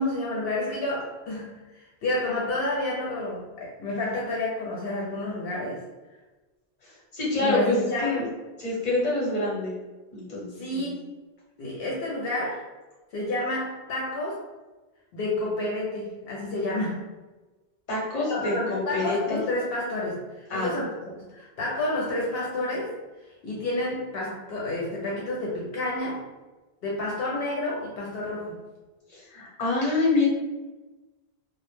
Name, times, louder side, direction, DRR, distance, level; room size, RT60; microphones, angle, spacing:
voice 1, 0.0-5.8 7.4-8.3 10.6-11.1 11.6-12.6 13.1-14.4 15.1-17.1 18.3-20.9 21.2-22.9 23.4-26.2 26.8-28.6, left 2 dB, 70° left, -4 dB, 0.8 m, -30 dB
voice 2, 6.8-8.3 8.6-9.8 10.1-10.9 17.9-19.4 20.5-20.7 29.1-30.3, left 2 dB, 45° left, -5 dB, 0.8 m, -27 dB
2.1 x 2.0 x 3.0 m, 1.2 s
omnidirectional pair, 1.0 m